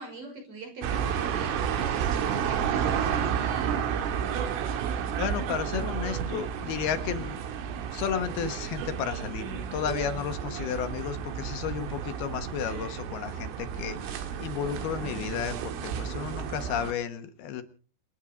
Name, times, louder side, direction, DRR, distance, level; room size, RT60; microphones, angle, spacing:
voice 1, 0.0-3.9, right 3 dB, 40° right, 3 dB, 6.8 m, -42 dB
sound 1, 0.8-16.9, right 8 dB, 90° right, 4.4 m, -31 dB
voice 2, 5.2-7.4 7.9-17.6, left 8 dB, 65° left, 9 dB, 2.9 m, -33 dB
28.0 x 9.5 x 5.1 m, 0.42 s
omnidirectional pair, 5.6 m